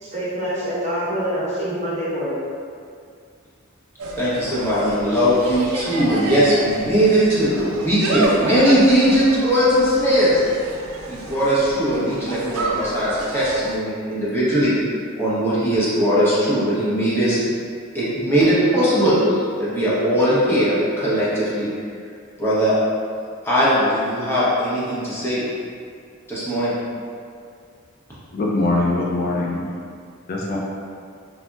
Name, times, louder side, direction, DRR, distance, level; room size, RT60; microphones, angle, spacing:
voice 1, 0.0-2.4, equal, 35° right, -9 dB, 0.8 m, -25 dB
Insect, 4.0-13.8, right 2 dB, 90° right, 0.3 m, -30 dB
voice 2, 4.2-10.4 11.1-14.7 15.2-17.4 17.9-21.7 22.4-22.7 23.4-25.5 26.3-26.7, equal, 10° left, -10 dB, 0.7 m, -19 dB
voice 3, 28.3-29.7 30.3-30.6, left 2 dB, 45° left, -4 dB, 0.3 m, -22 dB
3.8 x 2.0 x 2.2 m, 2.2 s
head